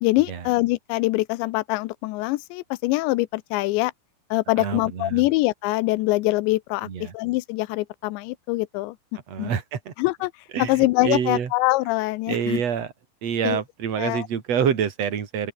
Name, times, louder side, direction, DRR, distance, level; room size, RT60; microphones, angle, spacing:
voice 1, 0.0-3.9 4.3-6.9 7.1-9.0 9.4-9.5 10.0-10.3 10.7-12.6 13.4-13.6 14.0-14.3, left 20 dB, 90° left, 3.0 m, -24 dB
voice 2, 4.6-5.2 6.8-7.2 9.3-9.9 10.5-11.5 12.3-12.9 13.2-15.5, right 7 dB, 40° right, 3.5 m, -27 dB
open air
omnidirectional pair, 5.0 m